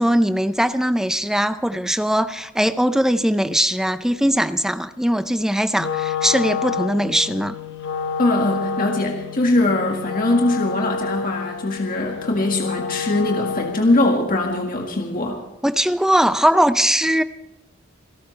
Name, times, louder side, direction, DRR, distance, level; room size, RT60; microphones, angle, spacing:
voice 1, 0.0-7.5 15.6-17.2, equal, 5° right, 12 dB, 0.5 m, -20 dB
Wind instrument woodwind instrument, 5.7-14.0, left 6 dB, 65° left, 1.3 m, -29 dB
voice 2, 8.2-15.4, left 2 dB, 45° left, 1 dB, 1.8 m, -21 dB
27.5 x 12.5 x 3.3 m, 0.94 s
head